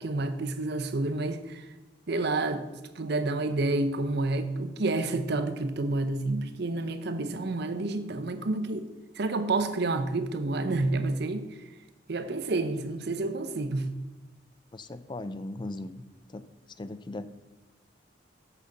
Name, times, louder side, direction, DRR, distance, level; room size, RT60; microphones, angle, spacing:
voice 1, 0.0-1.6 2.1-2.7 2.9-8.9 9.2-11.4 12.1-13.9, right 2 dB, 60° right, 10 dB, 0.7 m, -29 dB
voice 2, 14.7-16.0 16.3-16.5 16.8-17.3, left 2 dB, 25° left, 14 dB, 0.4 m, -38 dB
7.6 x 6.6 x 5.5 m, 1.1 s
head